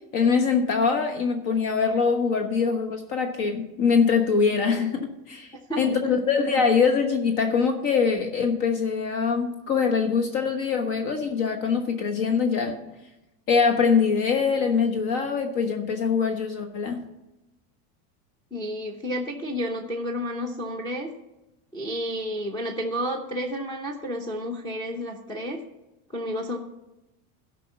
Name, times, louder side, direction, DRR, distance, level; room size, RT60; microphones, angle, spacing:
voice 1, 0.1-12.7 13.5-17.0, left 5 dB, 50° left, 5 dB, 1.2 m, -23 dB
voice 2, 5.7-6.1 18.5-21.1 21.7-25.6 26.1-26.6, equal, 10° left, 0 dB, 0.8 m, -31 dB
12.5 x 5.5 x 6.8 m, 0.97 s
supercardioid pair, 145°, 42 cm